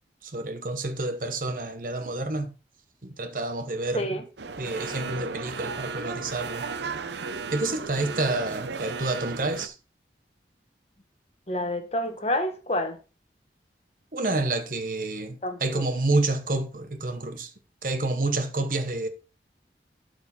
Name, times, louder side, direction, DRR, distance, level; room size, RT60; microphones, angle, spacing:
voice 1, 0.2-2.5 3.0-4.2 4.6-6.7 7.5-9.8 14.1-17.5 17.8-19.1, right 2 dB, 50° right, 1.0 m, -29 dB
voice 2, 3.9-4.2 11.5-13.0 15.4-15.8, left 1 dB, 35° left, 1.2 m, -28 dB
sound 1, 4.4-9.7, right 4 dB, 85° right, 0.7 m, -35 dB
12.0 x 4.8 x 4.3 m
head